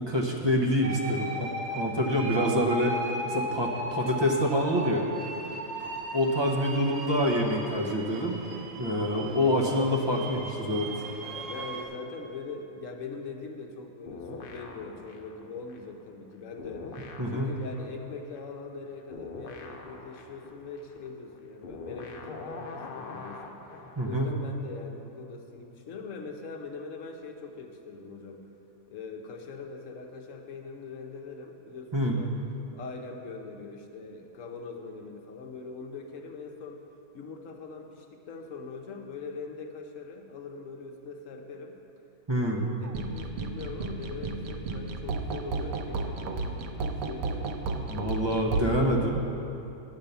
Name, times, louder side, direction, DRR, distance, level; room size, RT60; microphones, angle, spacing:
voice 1, 0.0-2.9 3.2-5.0 6.1-8.4 8.8-10.9 17.2-17.5 24.0-24.3 31.9-32.2 42.3-42.6 47.9-49.2, equal, 25° right, 0 dB, 0.8 m, -26 dB
sound 1, 0.8-11.8, right 1 dB, 70° right, 1.3 m, -37 dB
voice 2, 3.3-3.9 5.5-5.9 11.5-16.9 17.3-23.6 24.0-28.5 28.9-32.3 32.7-36.8 37.1-41.8 42.4-47.6, left 4 dB, 70° left, 3 dB, 1.2 m, -42 dB
sound 2, 14.1-16.3 16.6-24.2, left 3 dB, 50° left, 0.8 m, -44 dB
sound 3, 42.8-48.6, right 3 dB, 85° right, 1.1 m, -33 dB
8.9 x 6.2 x 6.8 m, 2.8 s
omnidirectional pair, 1.4 m